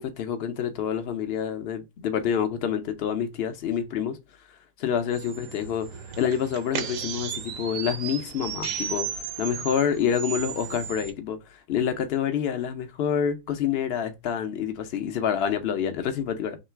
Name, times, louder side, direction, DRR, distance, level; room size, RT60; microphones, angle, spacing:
voice 1, 0.0-4.2 4.8-16.6, left 8 dB, 65° left, 0.6 m, -27 dB
sound 1, 5.1-11.1, right 8 dB, 65° right, 1.1 m, -35 dB
3.2 x 2.9 x 4.4 m
omnidirectional pair, 1.8 m